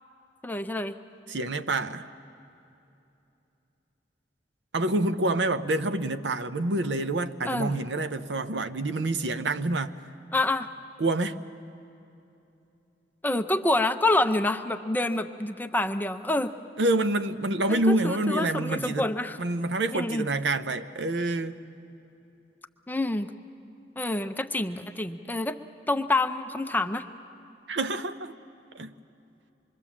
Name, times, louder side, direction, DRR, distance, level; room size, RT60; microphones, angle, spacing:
voice 1, 0.4-1.0 7.5-7.8 10.3-10.7 13.2-16.5 17.7-19.4 19.9-20.3 22.9-23.3 24.0-25.5 25.9-27.0, left 2 dB, 10° left, 0.6 m, -27 dB
voice 2, 1.3-2.1 4.7-9.9 11.0-11.4 16.8-19.1 19.4-21.6 27.7-28.3 28.7-28.9, right 2 dB, 70° right, 0.7 m, -27 dB
26.0 x 22.5 x 7.3 m
head